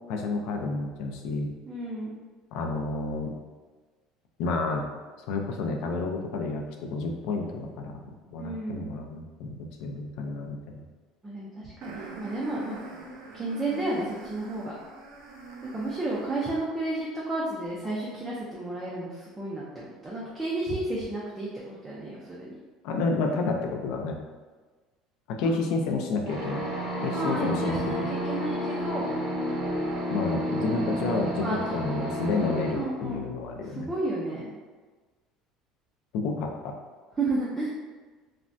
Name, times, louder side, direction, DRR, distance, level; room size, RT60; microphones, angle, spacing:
voice 1, 0.1-1.5 2.5-3.4 4.4-4.9 5.3-8.0 8.3-10.8 22.8-24.2 25.3-26.6 27.0-28.1 30.1-33.9 36.1-36.8, left 3 dB, 60° left, 2 dB, 0.4 m, -30 dB
voice 2, 1.7-2.2 8.4-8.9 11.2-12.8 13.3-14.7 15.7-22.5 27.1-29.1 31.4-31.8 32.7-33.2 33.6-34.5 37.2-37.7, right 2 dB, 15° right, -6 dB, 0.3 m, -32 dB
sound 1, 11.8-16.7, right 3 dB, 90° right, 0.5 m, -44 dB
sound 2, 26.2-32.7, equal, 50° right, 0.6 m, -31 dB
3.2 x 2.1 x 2.5 m, 1.4 s
cardioid pair, 175°, 0 cm